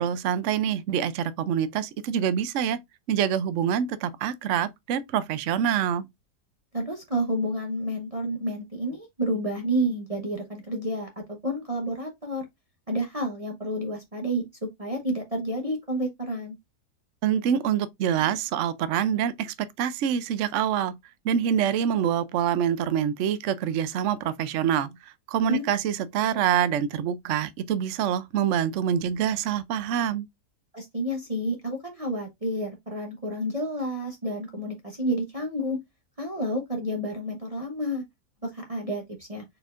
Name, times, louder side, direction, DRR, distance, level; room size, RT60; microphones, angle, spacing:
voice 1, 0.0-2.8 3.1-6.1 17.2-20.9 21.2-30.3, right 9 dB, 70° right, 0.7 m, -26 dB
voice 2, 6.7-12.4 12.9-16.6 25.5-25.6 30.7-35.8 36.2-38.0 38.4-39.4, right 1 dB, 30° right, 0.8 m, -30 dB
4.4 x 4.4 x 2.4 m
omnidirectional pair, 1.8 m